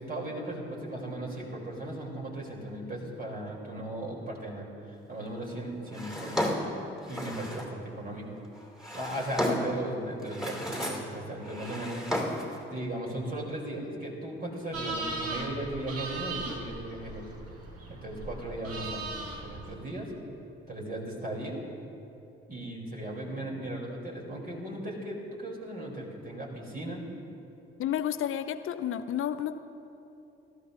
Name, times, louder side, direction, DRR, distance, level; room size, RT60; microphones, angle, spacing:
voice 1, 0.0-4.7 5.1-6.5 7.0-8.3 8.9-12.0 12.7-17.2 17.9-20.1 20.7-21.6 22.5-27.0, right 1 dB, 30° right, -2 dB, 3.2 m, -37 dB
Drawer open or close, 5.9-7.8 8.6-9.8 10.2-11.1 11.4-12.6, left 1 dB, ahead, 2.7 m, -33 dB
sound 1, 14.7-19.7, right 2 dB, 55° right, 1.8 m, -38 dB
voice 2, 27.8-29.6, left 10 dB, 45° left, 12 dB, 0.6 m, -31 dB
21.0 x 13.0 x 2.6 m, 2.8 s
figure-of-eight pair, 40°, 29 cm